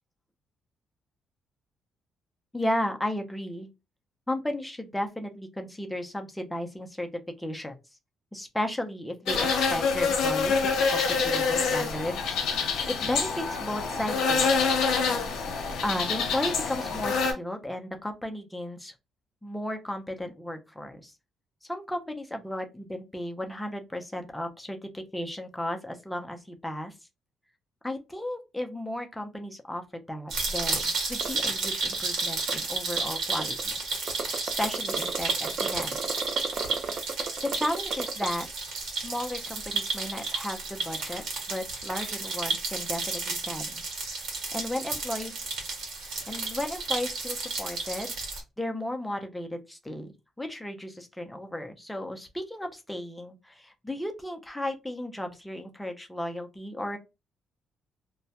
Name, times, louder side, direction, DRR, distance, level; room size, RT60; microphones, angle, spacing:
voice 1, 2.5-3.7 4.3-7.1 7.4-7.7 8.3-14.5 15.8-18.9 19.4-21.1 21.7-26.9 27.8-33.8 34.6-36.1 37.4-38.5 38.8-41.2 41.5-43.8 44.5-45.4 46.3-48.1 48.6-50.1 50.4-57.0, left 1 dB, 5° left, 4 dB, 0.5 m, -34 dB
sound 1, 9.3-17.3, left 5 dB, 80° left, 0.6 m, -26 dB
sound 2, 30.3-48.4, right 3 dB, 80° right, 1.1 m, -32 dB
sound 3, 30.8-30.9 31.2-31.3 31.6-31.7 31.9-32.5 33.0-33.6 34.1-38.2, right 6 dB, 55° right, 0.3 m, -33 dB
2.2 x 2.1 x 2.7 m, 0.25 s
cardioid pair, 90°, 0 cm